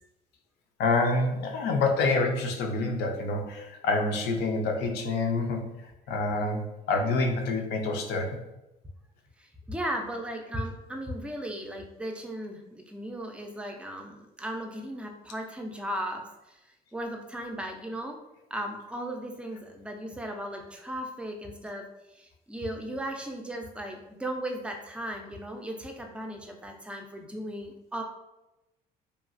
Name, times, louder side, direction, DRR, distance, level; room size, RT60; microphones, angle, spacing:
voice 1, 0.8-5.7 6.1-8.4, left 3 dB, 85° left, 3 dB, 0.5 m, -27 dB
voice 2, 9.7-16.2 16.9-18.2 18.5-21.9 22.2-28.0, right 1 dB, 5° right, 2 dB, 0.4 m, -36 dB
2.9 x 2.3 x 2.5 m, 0.96 s
cardioid pair, 110°, 17 cm